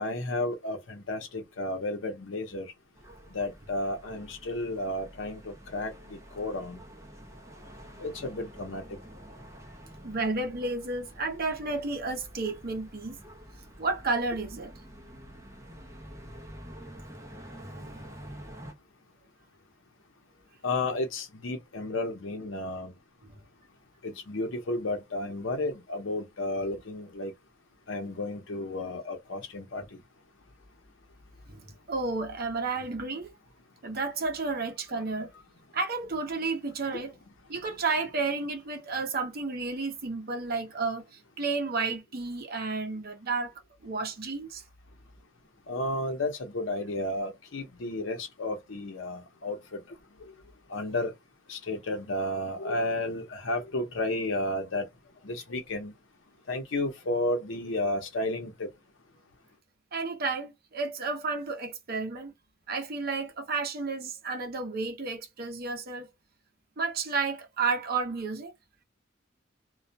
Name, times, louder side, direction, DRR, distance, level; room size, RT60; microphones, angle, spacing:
voice 1, 0.0-2.7 3.3-6.8 8.0-8.8 20.6-22.9 24.0-27.3 27.9-29.8 45.7-49.8 50.7-51.1 51.5-54.9 55.2-55.9 56.5-58.7, left 2 dB, 75° left, 0.8 m, -32 dB
sound 1, 3.0-18.7, equal, 15° right, 0.6 m, -48 dB
voice 2, 10.0-13.2 13.8-14.7 17.6-18.0 23.2-23.4 26.7-26.8 31.5-33.3 33.8-35.3 35.7-37.1 37.5-43.5 43.8-44.6 59.9-62.3 62.7-66.1 66.8-68.5, right 3 dB, 50° right, 0.7 m, -32 dB
2.3 x 2.1 x 2.6 m
head